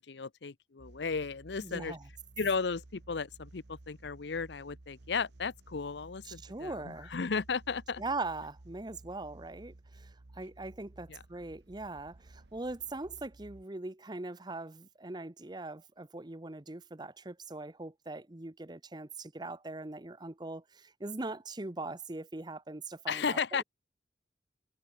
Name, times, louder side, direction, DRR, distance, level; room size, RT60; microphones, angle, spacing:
voice 1, 0.0-2.0 2.4-8.0 11.1-11.2 23.1-23.6, left 5 dB, 70° left, 0.7 m, -35 dB
sound 1, 0.8-13.6, right 2 dB, 70° right, 1.1 m, -55 dB
voice 2, 1.6-2.0 6.2-7.1 8.0-23.6, right 2 dB, 25° right, 0.9 m, -41 dB
head